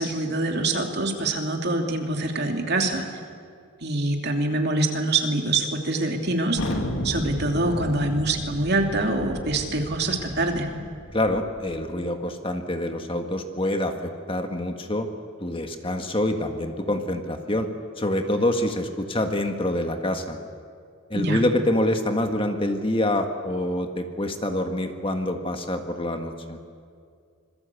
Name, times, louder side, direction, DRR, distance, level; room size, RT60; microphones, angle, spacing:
voice 1, 0.0-3.0 3.8-6.6 7.0-10.7 21.1-21.4, right 2 dB, 50° right, 3 dB, 3.0 m, -25 dB
Thunder, 6.6-11.7, left 1 dB, 90° left, 2.6 m, -33 dB
voice 2, 11.1-15.1 15.4-17.7 18.0-20.4 21.1-26.6, left 1 dB, 25° left, 5 dB, 1.7 m, -26 dB
26.0 x 22.0 x 8.4 m, 2.2 s
head